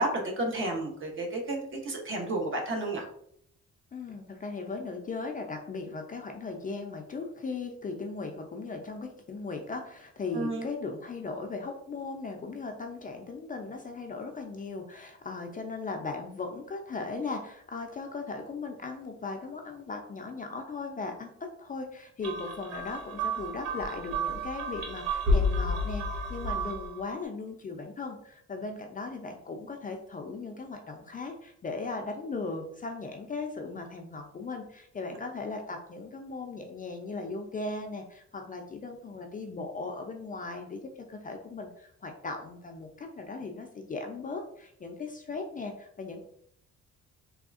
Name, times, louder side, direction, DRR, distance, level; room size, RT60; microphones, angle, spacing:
voice 1, 0.0-3.1 10.3-10.7, right 1 dB, 40° right, 2 dB, 0.8 m, -31 dB
voice 2, 3.9-21.3 21.6-40.8 41.1-46.2, left 3 dB, 30° left, 3 dB, 0.4 m, -38 dB
sound 1, 22.2-27.0, equal, 85° right, 0.7 m, -30 dB
3.4 x 2.3 x 2.4 m, 0.67 s
cardioid pair, 90°, 30 cm